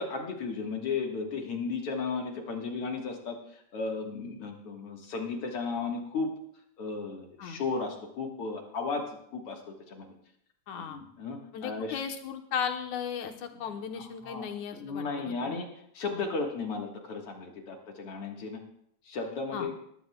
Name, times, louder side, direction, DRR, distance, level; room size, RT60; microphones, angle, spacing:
voice 1, 0.0-6.3 6.8-9.6 9.9-10.1 10.9-12.0 14.0-15.7 15.9-18.6 19.1-19.7, left 4 dB, 55° left, 2 dB, 2.3 m, -35 dB
voice 2, 10.7-11.0 11.5-15.6 19.5-19.7, left 7 dB, 80° left, 5 dB, 2.4 m, -36 dB
19.5 x 14.0 x 2.3 m, 0.71 s
omnidirectional pair, 3.4 m